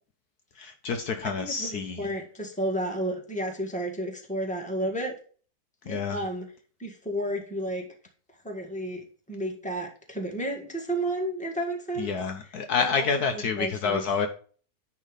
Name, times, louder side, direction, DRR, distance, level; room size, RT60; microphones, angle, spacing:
voice 1, 0.5-2.1 5.9-6.2 12.0-14.3, left 5 dB, 65° left, 6 dB, 1.2 m, -28 dB
voice 2, 1.2-5.1 5.8-6.4 6.8-7.8 8.4-12.1 12.8-13.1 13.3-14.0, right 1 dB, 5° left, 1 dB, 1.5 m, -32 dB
9.9 x 3.7 x 5.1 m, 0.42 s
omnidirectional pair, 1.9 m